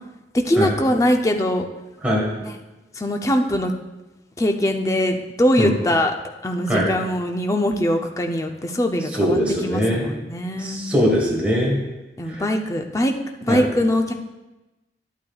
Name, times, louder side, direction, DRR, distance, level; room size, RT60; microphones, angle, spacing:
voice 1, 0.3-1.6 3.0-3.7 4.4-6.1 6.4-10.8 12.2-13.1 13.4-14.1, left 1 dB, 20° left, 3 dB, 0.5 m, -22 dB
voice 2, 9.1-10.1 10.6-11.8 12.3-12.4 13.5-13.6, equal, 10° right, -5 dB, 1.5 m, -21 dB
11.0 x 8.6 x 2.3 m, 1.1 s
head